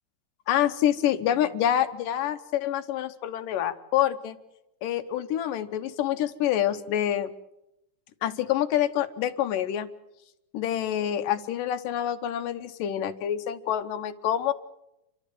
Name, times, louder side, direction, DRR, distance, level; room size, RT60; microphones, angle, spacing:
voice 1, 0.5-4.4 4.8-7.3 8.2-9.9 10.5-14.5, left 11 dB, 80° left, 10 dB, 2.6 m, -27 dB
30.0 x 12.5 x 9.2 m, 0.91 s
omnidirectional pair, 3.8 m